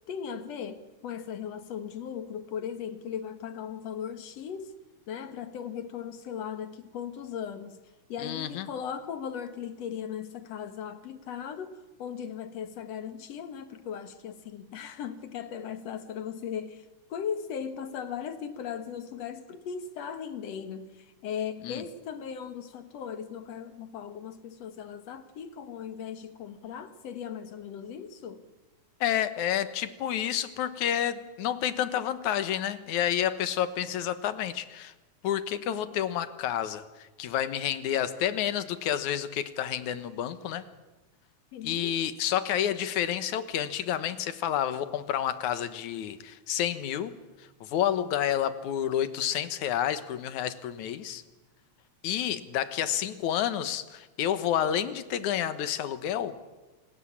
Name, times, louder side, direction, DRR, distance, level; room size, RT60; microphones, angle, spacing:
voice 1, 0.1-4.7 5.1-7.8 8.1-28.4 41.5-42.0, left 8 dB, 60° left, 2.5 m, -38 dB
voice 2, 8.2-8.7 21.6-21.8 29.0-34.9 35.2-40.7 41.6-51.2 52.0-56.4, left 10 dB, 80° left, 2.6 m, -29 dB
27.0 x 19.5 x 8.7 m
omnidirectional pair, 3.4 m